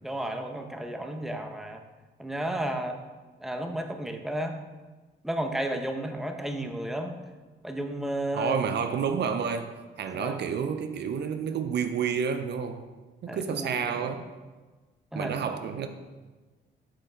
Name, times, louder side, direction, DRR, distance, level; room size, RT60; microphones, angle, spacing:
voice 1, 0.0-1.8 2.2-3.0 3.4-4.6 5.2-7.2 7.6-8.6 10.1-10.4 13.3-14.2 15.1-15.4 15.7-15.9, right 1 dB, ahead, 5 dB, 0.8 m, -33 dB
voice 2, 8.3-12.8 13.2-14.3 15.1-15.9, right 7 dB, 60° right, 8 dB, 0.6 m, -30 dB
7.6 x 5.5 x 4.4 m, 1.3 s
cardioid pair, 90°, 20 cm